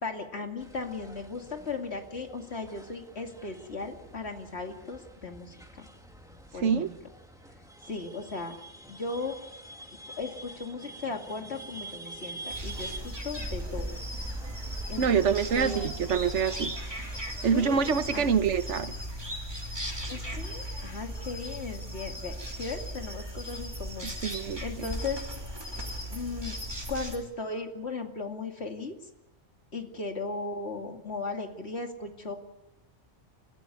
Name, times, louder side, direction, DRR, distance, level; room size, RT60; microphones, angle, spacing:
voice 1, 0.0-5.9 6.5-6.9 7.9-8.5 8.9-9.4 10.2-14.0 14.9-15.9 17.5-17.8 18.1-18.4 20.1-25.2 26.1-26.6 26.9-29.0 29.7-32.3, left 3 dB, 65° left, 2.7 m, -37 dB
sound 1, 0.6-18.3, right 2 dB, 5° right, 2.4 m, -48 dB
voice 2, 6.6-6.9 15.0-16.7 17.4-18.9 24.0-24.9, right 6 dB, 80° right, 1.3 m, -26 dB
sound 2, 12.5-27.2, equal, 20° right, 3.0 m, -37 dB
29.5 x 13.5 x 9.6 m
omnidirectional pair, 1.2 m